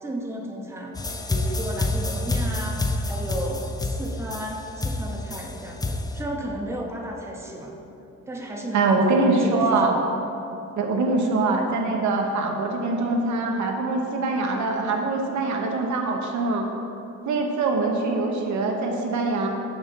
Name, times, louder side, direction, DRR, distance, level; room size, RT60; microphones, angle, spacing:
voice 1, 0.0-7.7 8.3-10.0, right 1 dB, 10° right, 0 dB, 0.9 m, -34 dB
sound 1, 1.0-6.2, left 2 dB, 15° left, 0.4 m, -27 dB
voice 2, 8.7-9.9 10.8-16.7 17.2-19.5, right 3 dB, 70° right, 1 dB, 1.0 m, -23 dB
6.5 x 5.7 x 4.4 m, 2.9 s
cardioid pair, 90°, 30 cm